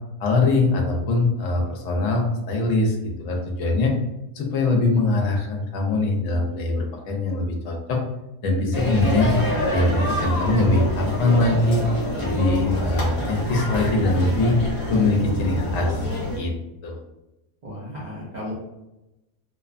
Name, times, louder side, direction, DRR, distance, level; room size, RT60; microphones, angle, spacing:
voice 1, 0.2-3.9 4.3-8.0 8.4-9.3 9.7-11.8 12.2-14.6 14.9-16.0 16.4-16.5 16.8-16.9, left 2 dB, 70° left, 1 dB, 0.9 m, -22 dB
sound 1, 8.7-16.4, left 1 dB, 40° left, 0.4 m, -27 dB
voice 2, 17.6-18.5, left 1 dB, 55° right, -7 dB, 0.5 m, -34 dB
2.7 x 2.1 x 2.4 m, 0.94 s
omnidirectional pair, 1.5 m